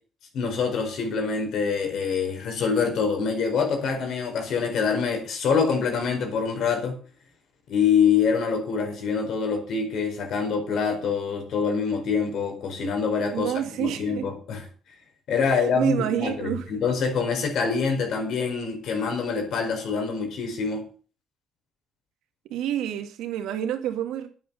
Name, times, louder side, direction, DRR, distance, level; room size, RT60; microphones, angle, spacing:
voice 1, 0.3-7.0 7.7-14.6 15.3-20.9, left 5 dB, 70° left, 5 dB, 4.6 m, -25 dB
voice 2, 13.3-14.2 15.5-16.6 22.5-24.3, right 10 dB, 85° right, 7 dB, 2.1 m, -28 dB
9.8 x 9.5 x 6.9 m, 0.39 s
cardioid pair, 100°, 0 cm